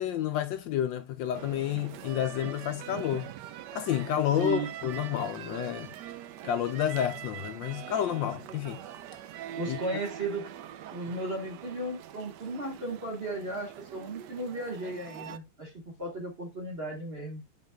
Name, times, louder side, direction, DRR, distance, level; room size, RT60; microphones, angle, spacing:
voice 1, 0.0-3.3 3.7-5.9 6.4-8.8 9.7-9.8, left 10 dB, 75° left, 1.2 m, -30 dB
sound 1, 1.3-15.4, right 11 dB, 75° right, 1.0 m, -43 dB
voice 2, 9.6-10.5 10.9-15.7 16.0-17.4, right 2 dB, 35° right, 1.2 m, -35 dB
8.1 x 5.5 x 2.2 m
omnidirectional pair, 2.3 m